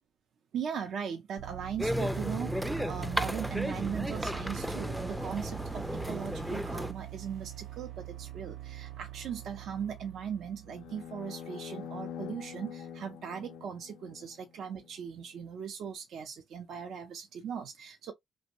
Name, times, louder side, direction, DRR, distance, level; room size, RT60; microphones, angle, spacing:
voice 1, 0.5-18.1, right 7 dB, 70° right, 0.5 m, -39 dB
sound 1, 1.4-11.2, right 15 dB, 90° right, 0.9 m, -44 dB
sound 2, 1.8-6.9, equal, 5° right, 0.3 m, -34 dB
sound 3, 10.7-14.9, left 8 dB, 90° left, 0.5 m, -45 dB
2.6 x 2.0 x 2.9 m
cardioid pair, 90°, 0 cm